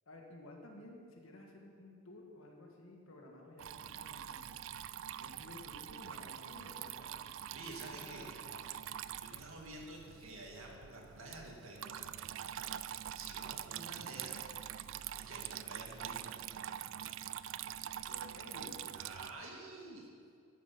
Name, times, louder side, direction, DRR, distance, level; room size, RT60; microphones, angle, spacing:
voice 1, 0.1-4.6 5.2-8.8 9.3-9.4 18.1-18.9, left 2 dB, 75° left, 1 dB, 1.8 m, -54 dB
Water tap faucet / Trickle dribble, 3.6-19.3, right 10 dB, 60° right, 0.3 m, -45 dB
voice 2, 7.5-8.3 9.2-12.1 12.4-12.8 13.1-14.5 15.2-16.5 18.9-20.1, right 2 dB, 80° right, 0 dB, 2.2 m, -50 dB
11.5 x 9.2 x 6.0 m, 2.3 s
head